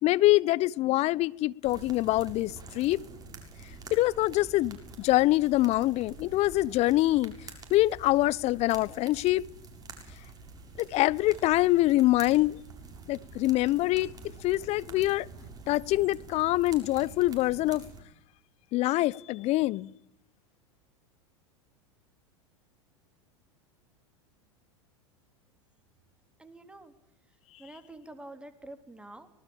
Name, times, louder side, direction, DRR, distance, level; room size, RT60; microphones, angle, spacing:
voice 1, 0.0-3.0 3.9-7.3 7.7-9.4 10.8-12.6 13.1-14.1 14.4-15.3 15.7-17.8 18.7-19.9, left 17 dB, 45° left, 0.9 m, -25 dB
sound 1, 1.6-18.0, right 3 dB, 25° right, 6.9 m, -47 dB
voice 2, 26.4-26.9 27.6-29.3, right 2 dB, 5° right, 3.4 m, -47 dB
25.0 x 20.0 x 8.8 m
hypercardioid pair, 85°, 16 cm